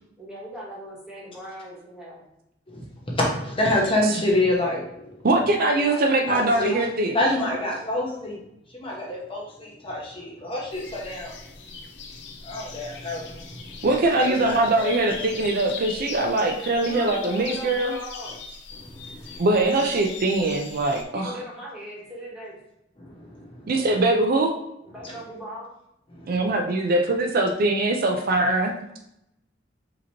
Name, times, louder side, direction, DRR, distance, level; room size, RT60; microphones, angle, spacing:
voice 1, 0.2-2.2 5.6-6.1 6.4-8.0 16.8-18.3 21.1-22.6 24.8-25.7, equal, 5° right, -7 dB, 1.5 m, -39 dB
voice 2, 3.2-5.3 6.3-6.7 7.1-8.4 8.7-11.4 12.4-13.9 14.2-14.9 18.7-19.4 23.0-23.7 26.1-26.4, left 1 dB, 30° left, -3 dB, 1.0 m, -27 dB
voice 3, 5.2-7.2 13.8-17.9 19.4-21.3 23.7-24.5 26.3-28.8, right 2 dB, 50° right, 4 dB, 0.4 m, -22 dB
sound 1, 10.7-21.0, left 5 dB, 65° left, 0.6 m, -40 dB
5.0 x 2.9 x 2.8 m, 0.81 s
head